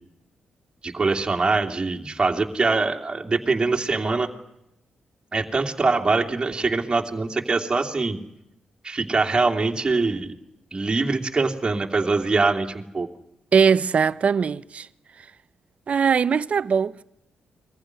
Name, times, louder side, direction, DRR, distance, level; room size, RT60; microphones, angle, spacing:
voice 1, 0.8-4.3 5.3-8.2 8.8-10.3 10.7-13.1, right 3 dB, 30° right, 2.8 m, -23 dB
voice 2, 13.5-14.9 15.2-15.3 15.9-17.0, right 6 dB, 55° right, 0.8 m, -20 dB
22.5 x 15.0 x 9.7 m
supercardioid pair, 45°, 3 cm